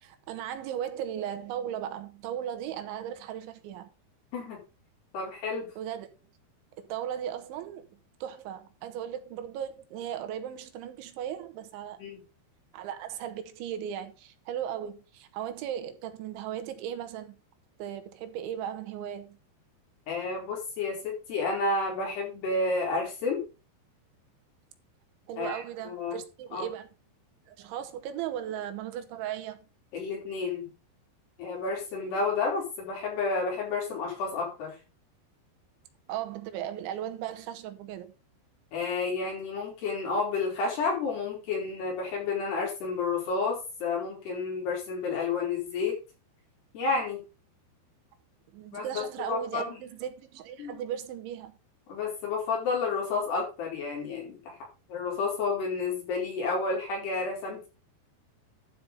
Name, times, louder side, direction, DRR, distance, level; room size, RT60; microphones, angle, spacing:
voice 1, 0.0-3.9 5.8-6.1 6.8-7.9 8.2-12.0 12.7-17.4 17.8-19.4 25.3-26.9 27.5-29.7 36.1-38.1 48.5-51.6, right 10 dB, 90° right, 3.7 m, -37 dB
voice 2, 5.1-5.7 12.0-12.2 20.1-23.5 25.3-26.2 26.5-26.7 29.9-30.7 31.4-34.7 38.7-46.0 46.7-47.2 48.7-49.8 50.6-50.8 51.9-54.5 54.9-57.7, left 4 dB, 65° left, 6.7 m, -31 dB
12.0 x 5.7 x 5.5 m
omnidirectional pair, 5.2 m